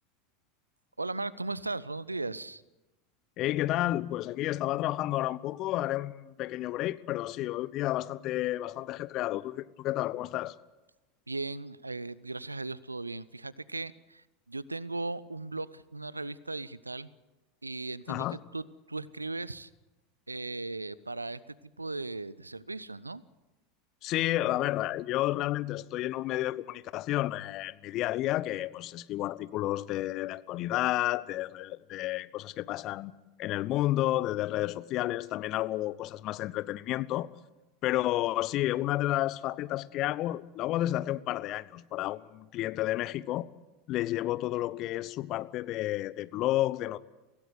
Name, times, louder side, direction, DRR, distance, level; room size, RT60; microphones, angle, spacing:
voice 1, 1.0-2.6 11.3-17.1 17.6-18.2 18.5-19.7 20.3-21.4 21.8-23.2, right 2 dB, 85° right, 0.7 m, -37 dB
voice 2, 3.4-10.6 18.1-18.4 24.0-33.1 33.4-37.3 37.8-43.5 43.9-47.0, left 15 dB, 45° left, 0.9 m, -31 dB
24.5 x 16.5 x 8.0 m
figure-of-eight pair, 80°, 0 cm